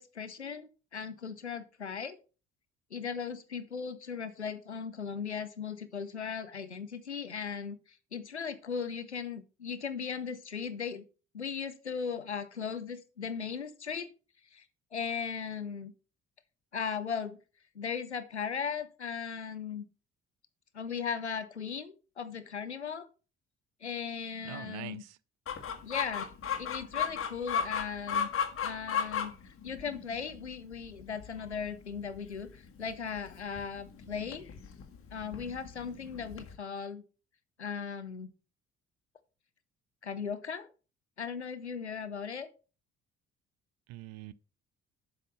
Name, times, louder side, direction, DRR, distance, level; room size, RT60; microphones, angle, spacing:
voice 1, 0.0-2.2 2.9-11.1 11.3-14.1 14.5-14.7 14.9-15.9 16.7-17.4 17.7-19.9 20.7-23.1 23.8-25.0 25.8-26.3 26.6-28.3 28.6-29.3 29.6-34.5 35.1-37.0 37.6-38.3 40.0-40.7 41.2-42.5, left 6 dB, 85° left, 0.7 m, -37 dB
voice 2, 24.4-25.1 43.9-44.3, right 15 dB, 50° right, 0.6 m, -44 dB
Chicken rooster, 25.5-36.6, left 7 dB, 40° left, 1.5 m, -36 dB
7.6 x 5.8 x 5.5 m
figure-of-eight pair, 50°, 33 cm